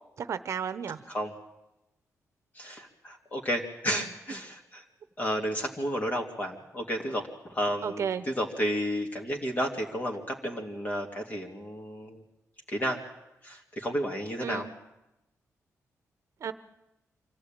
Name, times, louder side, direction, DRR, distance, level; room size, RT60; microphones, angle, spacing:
voice 1, 0.2-1.0 3.9-4.0 7.8-8.2 14.4-14.7 16.4-16.5, right 7 dB, 60° right, 12 dB, 0.9 m, -33 dB
voice 2, 2.5-4.8 5.2-12.2 12.7-13.0 13.4-14.7, equal, 30° left, 1 dB, 2.4 m, -32 dB
25.0 x 15.0 x 8.9 m, 0.92 s
wide cardioid pair, 135°, 6 cm